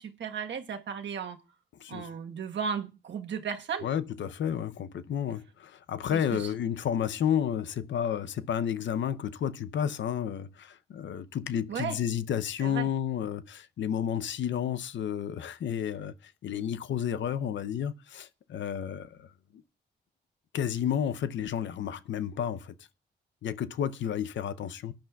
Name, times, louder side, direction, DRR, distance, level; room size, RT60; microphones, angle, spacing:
voice 1, 0.0-1.4 1.9-3.9 6.1-6.5 11.7-12.0 12.6-12.9, right 7 dB, 75° right, 1.3 m, -35 dB
voice 2, 3.8-19.3 20.5-22.7 23.4-24.9, left 9 dB, 80° left, 0.6 m, -31 dB
18.5 x 10.5 x 2.3 m
cardioid pair, 80°, 19 cm